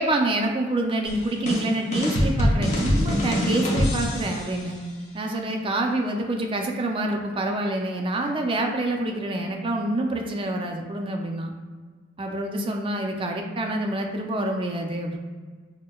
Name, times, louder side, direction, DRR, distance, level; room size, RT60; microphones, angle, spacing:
voice 1, 0.0-4.8 5.1-11.5 12.2-15.2, right 1 dB, 25° right, 2 dB, 0.3 m, -27 dB
sound 1, 1.1-4.5, equal, 35° left, 0.7 m, -24 dB
6.1 x 2.1 x 2.2 m, 1.4 s
head